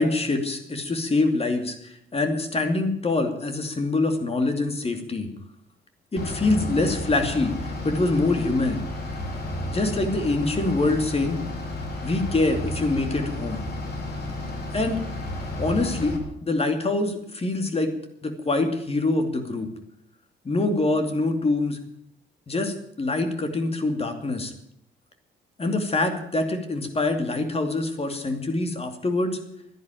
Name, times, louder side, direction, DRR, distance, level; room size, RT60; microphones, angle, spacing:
voice 1, 0.0-5.3 6.1-8.9 9.7-11.4 12.0-13.6 14.7-15.0 15.6-17.9 18.2-19.7 20.4-21.8 22.5-24.5 25.6-29.4, left 2 dB, 30° left, 6 dB, 2.6 m, -25 dB
Bus / Idling, 6.2-16.2, left 1 dB, 55° left, 3.7 m, -32 dB
12.0 x 10.5 x 9.3 m, 0.74 s
cardioid pair, 90°, 20 cm